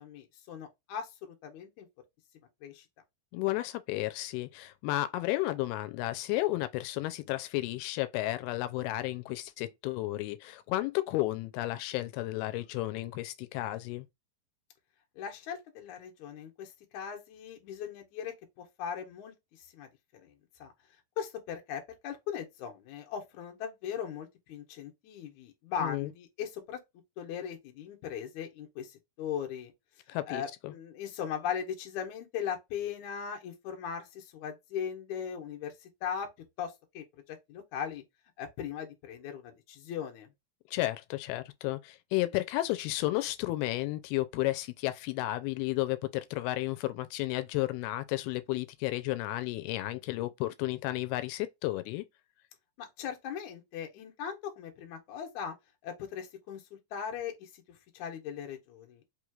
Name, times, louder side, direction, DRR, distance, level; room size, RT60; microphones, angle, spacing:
voice 1, 0.0-1.9 2.6-2.9 15.2-20.3 20.6-20.7 21.2-26.8 27.2-29.7 30.1-36.3 36.6-38.0 38.4-40.3 52.8-55.5 55.8-57.6 57.9-59.0, left 8 dB, 65° left, 2.1 m, -39 dB
voice 2, 3.3-14.1 25.8-26.1 30.1-30.7 40.7-52.1, left 17 dB, 85° left, 2.5 m, -32 dB
5.5 x 3.1 x 2.3 m
omnidirectional pair, 4.4 m